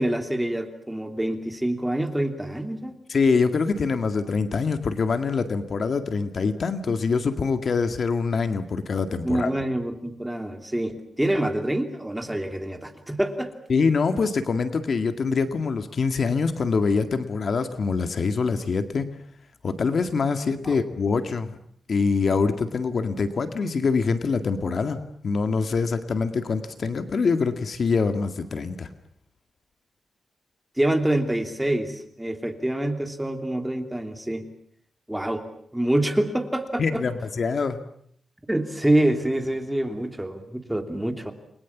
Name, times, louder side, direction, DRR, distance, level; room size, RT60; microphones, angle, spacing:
voice 1, 0.0-2.9 9.2-13.5 20.6-20.8 30.8-34.5 35.1-35.4 35.7-37.0 38.5-41.3, right 1 dB, 5° right, 6 dB, 3.0 m, -26 dB
voice 2, 3.1-9.5 13.7-19.1 19.6-21.6 21.9-25.0 25.2-28.9 36.8-37.8, left 4 dB, 50° left, 8 dB, 2.0 m, -24 dB
29.5 x 22.5 x 7.3 m, 0.66 s
wide cardioid pair, 135°, 0 cm